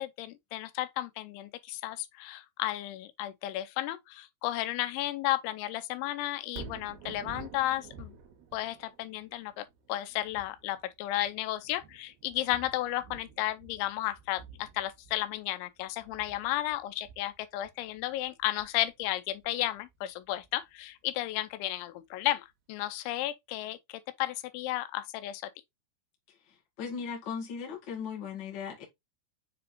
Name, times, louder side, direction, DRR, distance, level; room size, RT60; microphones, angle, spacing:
voice 1, 0.0-8.1 8.5-25.5, left 15 dB, 90° left, 3.0 m, -33 dB
Thunder, 6.4-20.6 21.1-21.2, right 6 dB, 70° right, 2.9 m, -51 dB
voice 2, 26.8-28.8, left 6 dB, 40° left, 1.7 m, -37 dB
7.0 x 5.1 x 2.7 m
omnidirectional pair, 5.3 m